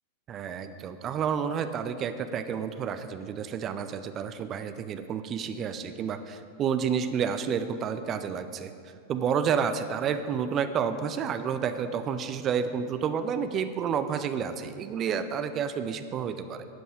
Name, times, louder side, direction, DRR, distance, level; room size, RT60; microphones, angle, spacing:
voice 1, 0.3-8.7 9.1-16.7, right 7 dB, 30° right, 10 dB, 0.7 m, -30 dB
12.0 x 7.9 x 4.9 m, 2.3 s
figure-of-eight pair, 90°, 0 cm